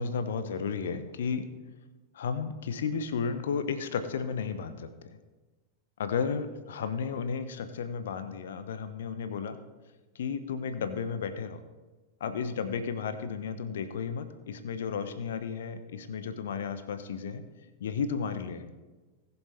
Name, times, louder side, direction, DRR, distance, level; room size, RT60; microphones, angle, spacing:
voice 1, 0.0-1.5 2.1-4.9 6.0-9.6 10.1-11.6 12.2-17.4 17.8-18.7, left 6 dB, 60° left, 10 dB, 0.9 m, -33 dB
19.0 x 7.1 x 3.4 m, 1.3 s
figure-of-eight pair, 90°, 0 cm